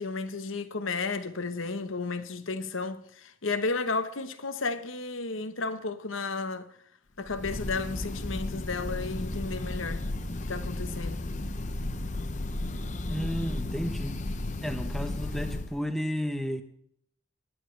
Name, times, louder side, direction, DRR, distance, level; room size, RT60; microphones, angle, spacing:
voice 1, 0.0-6.7 7.2-10.1 10.5-11.2, left 3 dB, 75° left, 1.2 m, -33 dB
Breathing / Bird, 7.3-15.8, left 2 dB, 35° left, 0.8 m, -34 dB
voice 2, 13.1-14.2 14.6-16.6, equal, ahead, 1.0 m, -32 dB
19.5 x 11.5 x 3.4 m
head